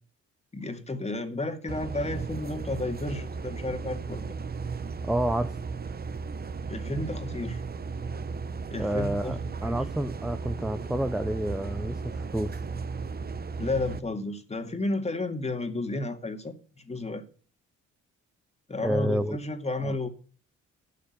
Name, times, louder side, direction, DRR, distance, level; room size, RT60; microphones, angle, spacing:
voice 1, 0.5-4.2 6.7-7.6 8.7-9.4 9.6-9.8 13.6-17.2 18.7-20.1, left 2 dB, 20° left, 2.2 m, -32 dB
sound 1, 1.7-14.0, right 4 dB, 30° right, 0.9 m, -35 dB
voice 2, 5.0-5.6 8.8-12.6 18.8-19.4 19.8-20.0, right 1 dB, ahead, 0.6 m, -29 dB
12.0 x 6.6 x 8.1 m
cardioid pair, 90°, 30 cm